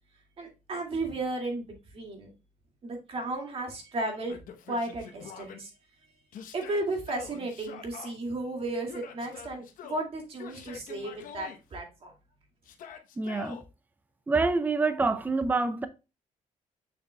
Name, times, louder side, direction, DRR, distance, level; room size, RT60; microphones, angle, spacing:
voice 1, 0.4-2.3 2.8-4.4 4.7-5.7 6.5-12.1, right 2 dB, 45° right, 2.1 m, -34 dB
Yell, 4.3-5.6 6.3-8.1 8.9-10.0 10.4-11.6 12.6-13.6, left 7 dB, 80° left, 0.9 m, -45 dB
voice 2, 13.2-13.6 14.3-15.9, right 3 dB, 15° right, 0.5 m, -26 dB
6.6 x 6.5 x 2.2 m
cardioid pair, 140°, 14 cm